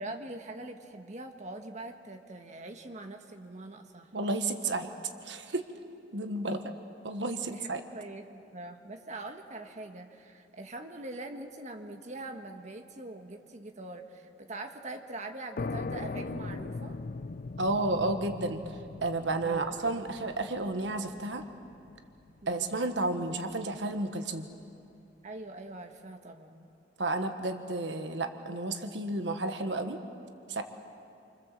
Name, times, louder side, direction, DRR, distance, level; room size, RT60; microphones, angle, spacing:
voice 1, 0.0-4.1 7.4-17.0 19.4-20.1 22.4-22.7 25.2-26.7, right 2 dB, 40° right, 5 dB, 1.6 m, -43 dB
voice 2, 4.1-4.9 5.2-5.6 6.1-6.6 7.0-7.8 17.6-21.4 22.5-24.5 27.0-30.0 30.5-30.6, right 2 dB, 80° right, 7 dB, 1.4 m, -32 dB
sound 1, 15.6-22.9, left 3 dB, 50° left, 0.5 m, -40 dB
28.5 x 25.5 x 7.6 m, 2.6 s
head